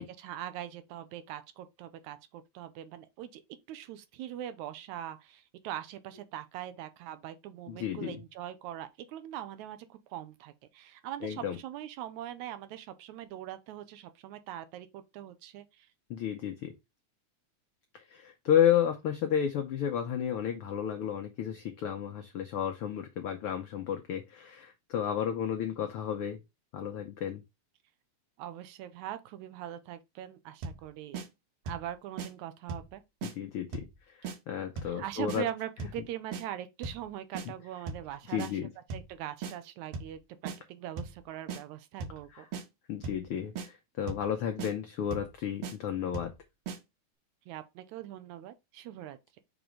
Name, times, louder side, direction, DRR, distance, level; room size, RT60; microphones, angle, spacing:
voice 1, 0.0-3.4 3.7-15.9 28.4-31.2 31.7-33.0 34.9-38.6 38.9-42.5 47.5-49.4, right 11 dB, 80° right, 2.0 m, -42 dB
voice 2, 7.7-8.1 11.2-11.6 16.1-16.7 17.9-26.4 26.7-27.4 33.2-35.4 38.3-38.7 42.3-42.4 42.9-46.3, left 9 dB, 85° left, 1.2 m, -32 dB
sound 1, 30.6-30.9 31.1-31.3 31.7-31.9 32.2-32.3 32.7-32.9 33.2-33.3 33.7-34.0 34.2-34.4 34.8-35.0 35.3-35.4 35.8-36.0 36.3-36.4 36.8-37.1 37.4-37.5 37.9-38.1 38.4-38.5 38.9-39.1 39.4-39.5 39.9-40.2 40.5-40.6 41.0-41.2 41.5-41.6 42.0-42.2 42.5-42.7 43.0-43.3 43.6-43.7 44.1-44.3 44.6-44.7 45.1-45.3 45.6-45.8 46.1-46.4 46.7-46.8, right 5 dB, 65° right, 1.9 m, -37 dB
6.0 x 3.1 x 5.0 m
omnidirectional pair, 3.4 m